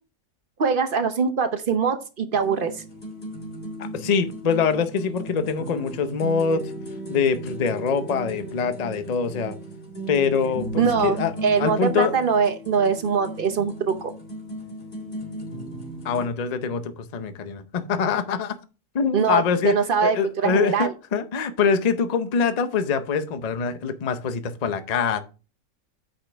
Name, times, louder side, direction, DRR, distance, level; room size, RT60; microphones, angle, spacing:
voice 1, 0.6-2.7 10.8-14.1 19.1-20.9, right 6 dB, 50° right, 0.6 m, -23 dB
sound 1, 2.3-16.3, right 1 dB, 30° left, 2.1 m, -36 dB
voice 2, 3.8-6.7 7.1-9.6 10.1-11.3 11.6-12.1 16.0-18.6 18.9-25.2, left 6 dB, 85° left, 0.3 m, -24 dB
8.6 x 5.5 x 3.3 m
omnidirectional pair, 1.8 m